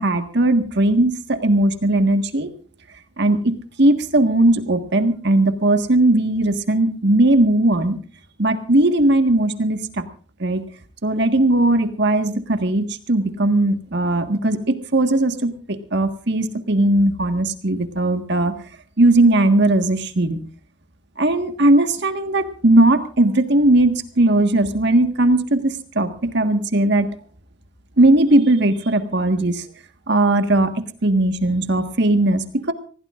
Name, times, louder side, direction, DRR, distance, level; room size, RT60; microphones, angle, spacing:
voice 1, 0.0-2.5 3.2-8.0 8.4-10.0 10.4-10.6 11.0-18.5 19.0-20.4 21.2-27.1 28.0-29.6 30.1-32.7, right 2 dB, 60° right, 7 dB, 1.6 m, -18 dB
25.5 x 16.5 x 2.5 m, 0.41 s
head